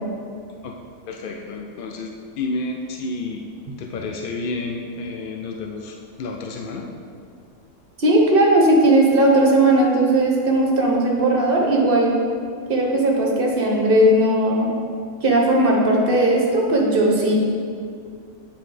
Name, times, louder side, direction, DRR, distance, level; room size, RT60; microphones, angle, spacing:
voice 1, 1.1-3.5 3.8-6.9, left 3 dB, 75° left, 2 dB, 0.5 m, -30 dB
voice 2, 8.0-12.1 12.7-14.7 15.2-17.3, right 1 dB, 45° right, -1 dB, 0.9 m, -17 dB
8.9 x 3.9 x 3.2 m, 2.2 s
omnidirectional pair, 1.4 m